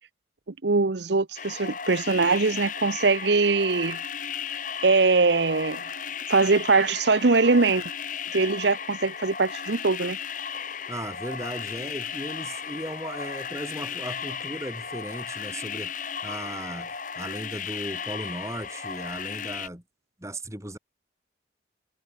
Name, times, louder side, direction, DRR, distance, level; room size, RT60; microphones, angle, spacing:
voice 1, 0.6-4.0 4.8-5.8 6.3-7.8 8.3-10.2, right 3 dB, 65° right, 0.8 m, -22 dB
sound 1, 1.4-19.7, left 7 dB, 45° left, 2.2 m, -35 dB
voice 2, 10.9-19.8 20.2-20.8, right 1 dB, 15° right, 6.9 m, -36 dB
head